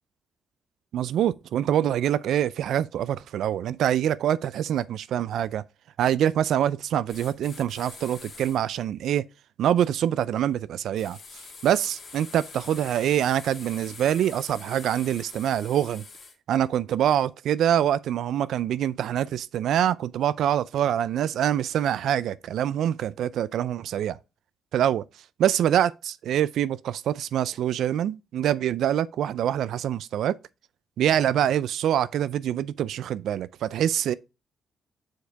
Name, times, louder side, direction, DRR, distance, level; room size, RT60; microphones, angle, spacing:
voice 1, 0.9-5.6 6.0-9.2 9.6-16.0 16.5-24.2 24.7-25.0 25.4-30.3 31.0-34.1, right 10 dB, 75° right, 0.3 m, -25 dB
sound 1, 7.1-8.6 10.9-16.3, left 4 dB, 45° left, 1.9 m, -45 dB
6.6 x 4.7 x 3.4 m
cardioid pair, 105°, 0 cm